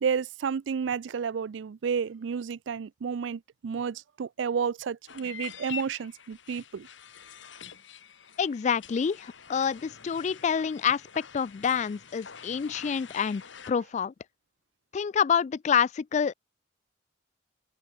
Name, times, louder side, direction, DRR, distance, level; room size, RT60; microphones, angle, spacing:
voice 1, 0.0-6.9, right 6 dB, 80° right, 0.4 m, -31 dB
sound 1, 5.1-13.7, left 8 dB, 85° left, 1.8 m, -46 dB
voice 2, 8.4-13.4 13.7-14.1 14.9-16.3, left 7 dB, 40° left, 0.3 m, -27 dB
open air
head